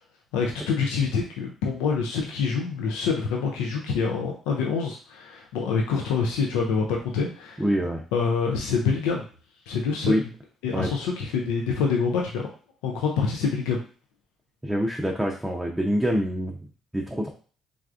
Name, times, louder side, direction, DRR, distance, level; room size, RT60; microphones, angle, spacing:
voice 1, 0.3-7.6 8.1-9.2 9.7-10.2 10.6-12.5 12.8-13.8, left 5 dB, 85° left, 0 dB, 0.4 m, -26 dB
voice 2, 7.6-8.0 10.1-10.2 10.7-10.9 14.6-16.6 16.9-17.3, equal, 15° right, 0 dB, 0.5 m, -25 dB
3.3 x 2.3 x 2.4 m, 0.39 s
supercardioid pair, 60°, 0 cm